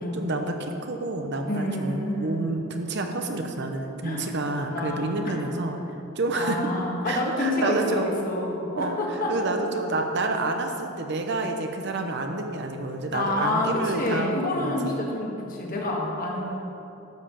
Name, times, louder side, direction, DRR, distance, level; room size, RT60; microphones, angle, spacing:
voice 1, 0.1-5.8 6.2-6.6 7.0-8.1 8.8-15.0, right 2 dB, 50° right, 4 dB, 0.9 m, -29 dB
voice 2, 1.5-2.6 4.0-4.3 4.7-5.4 6.3-9.4 13.1-16.5, left 1 dB, 40° left, -1 dB, 1.6 m, -28 dB
12.0 x 5.6 x 7.0 m, 2.9 s
head